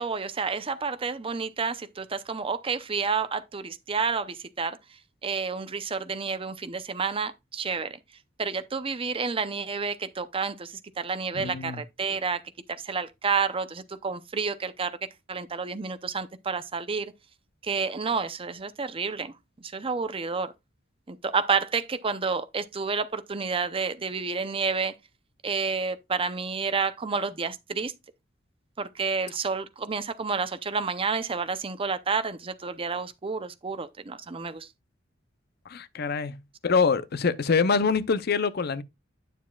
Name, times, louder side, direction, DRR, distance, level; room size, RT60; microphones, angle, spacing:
voice 1, 0.0-4.8 5.2-8.0 8.4-12.4 12.8-15.0 15.3-17.1 17.6-19.3 19.6-20.5 21.1-24.9 25.4-27.9 28.8-34.7, right 5 dB, 30° right, 0.6 m, -30 dB
voice 2, 11.3-11.8 35.7-36.4 36.6-38.8, left 5 dB, 55° left, 0.6 m, -25 dB
9.3 x 7.1 x 2.3 m
head